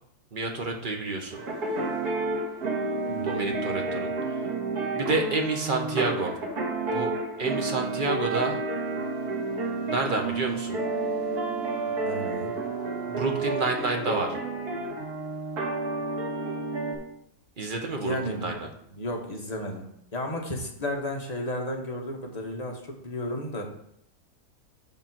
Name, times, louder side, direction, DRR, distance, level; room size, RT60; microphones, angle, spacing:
voice 1, 0.3-1.4 3.2-4.1 4.9-6.4 6.9-7.1 7.4-8.6 9.9-10.8 13.1-14.4 17.6-18.7, right 3 dB, 40° right, 3 dB, 0.9 m, -29 dB
sound 1, 1.3-17.0, right 3 dB, 80° right, 2.0 m, -30 dB
voice 2, 3.1-3.5 11.8-12.5 18.0-18.6 18.9-23.7, left 1 dB, 30° left, 1 dB, 1.0 m, -33 dB
6.9 x 3.7 x 5.8 m, 0.72 s
omnidirectional pair, 1.6 m